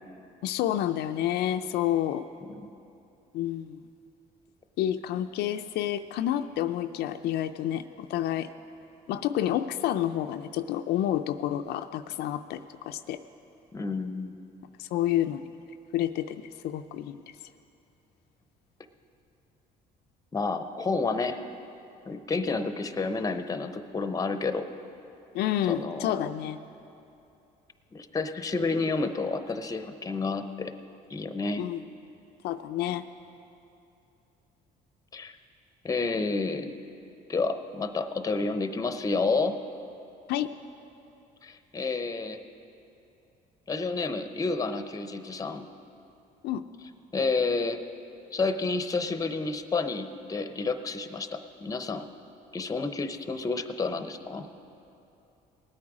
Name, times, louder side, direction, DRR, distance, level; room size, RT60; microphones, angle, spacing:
voice 1, 0.4-2.2 3.3-3.8 4.8-8.5 9.1-13.2 14.8-15.4 15.9-17.2 25.3-26.6 31.6-31.8 32.4-33.0 40.3-40.5 46.4-46.6, left 11 dB, 75° left, 8 dB, 0.4 m, -29 dB
voice 2, 2.4-2.7 13.7-14.3 20.3-21.4 22.1-24.6 25.7-26.3 27.9-30.7 31.1-31.6 35.1-35.3 35.8-36.7 37.3-39.6 41.4-42.4 43.7-45.7 47.1-47.8 48.3-52.0 52.5-54.5, left 3 dB, 20° left, 9 dB, 0.7 m, -30 dB
19.0 x 8.6 x 4.9 m, 2.8 s
cardioid pair, 110°, 17 cm